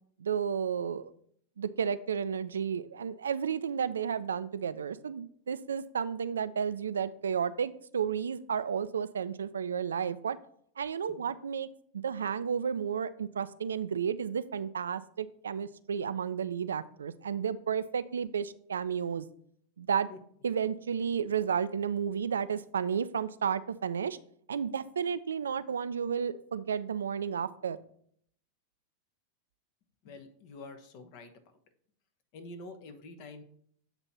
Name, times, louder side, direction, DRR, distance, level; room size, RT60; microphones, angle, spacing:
voice 1, 0.2-1.1 1.6-10.4 10.8-11.7 11.9-19.3 19.8-20.1 20.4-24.2 24.5-27.8, right 7 dB, 75° right, 14 dB, 0.3 m, -32 dB
voice 2, 30.0-31.3 32.3-33.4, left 2 dB, 50° left, 7 dB, 1.0 m, -47 dB
8.0 x 2.9 x 5.5 m, 0.63 s
figure-of-eight pair, 90°, 0 cm